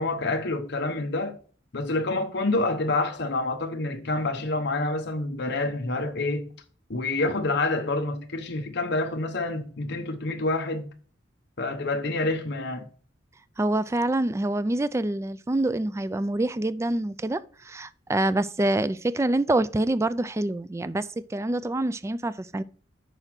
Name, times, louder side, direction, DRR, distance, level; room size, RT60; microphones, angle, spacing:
voice 1, 0.0-1.4 1.7-6.5 6.9-10.9 11.6-12.9, left 2 dB, 55° left, 1.0 m, -27 dB
voice 2, 13.6-22.6, right 1 dB, 15° right, 0.3 m, -26 dB
6.6 x 4.9 x 5.9 m
head